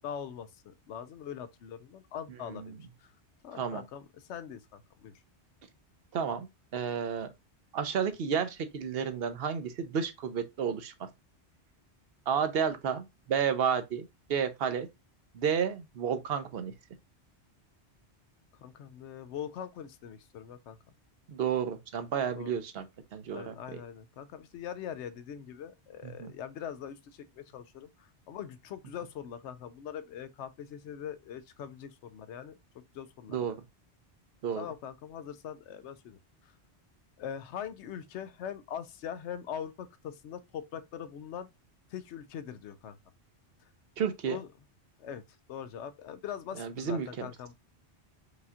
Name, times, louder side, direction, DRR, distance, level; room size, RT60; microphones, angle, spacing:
voice 1, 0.0-3.1 3.4-5.1 18.6-20.8 22.3-22.5 23.3-32.6 32.9-33.6 34.5-36.2 37.2-41.5 41.9-43.0 44.3-44.5 45.0-45.2 45.5-47.5, left 9 dB, 90° left, 0.9 m, -42 dB
voice 2, 6.1-7.3 7.7-11.1 12.3-14.9 15.3-16.7 21.3-22.9 23.1-23.5 26.0-26.3 33.3-33.5 34.4-34.7 44.0-44.4 46.6-47.3, right 7 dB, 65° right, 0.8 m, -31 dB
4.9 x 2.8 x 2.3 m
omnidirectional pair, 1.1 m